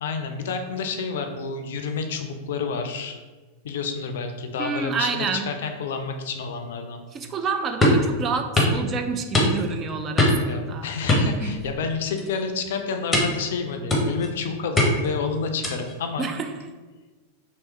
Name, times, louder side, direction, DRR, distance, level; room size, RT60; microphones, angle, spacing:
voice 1, 0.0-3.2 3.6-7.0 10.5-16.3, left 5 dB, 60° left, 6 dB, 0.4 m, -29 dB
voice 2, 4.6-5.5 7.1-10.9 11.4-11.5 16.2-16.5, right 5 dB, 25° right, 6 dB, 0.3 m, -28 dB
sound 1, 7.8-8.1 8.6-8.8 9.3-9.8 10.2-10.5 11.1-11.8 12.2-12.4 13.1-13.4 13.9-14.3 14.8-15.1 15.6-15.9, left 1 dB, 15° left, 0.7 m, -21 dB
3.3 x 2.9 x 3.1 m, 1.3 s
figure-of-eight pair, 90°, 0 cm